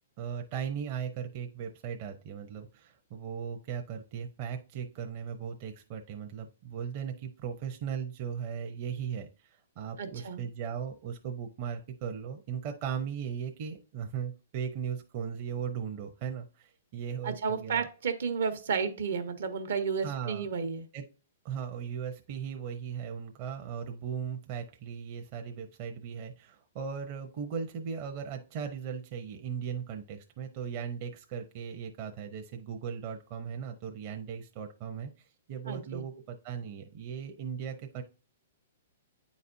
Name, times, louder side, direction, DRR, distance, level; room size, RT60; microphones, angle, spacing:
voice 1, 0.2-9.5 9.8-17.8 20.0-20.5 20.9-21.0 21.4-35.1 35.5-38.0, right 7 dB, 40° right, 4 dB, 0.7 m, -37 dB
voice 2, 10.0-10.4 17.2-20.9 35.7-36.0, right 6 dB, 75° right, 8 dB, 1.1 m, -32 dB
9.2 x 4.1 x 2.6 m, 0.36 s
hypercardioid pair, 145°, 0 cm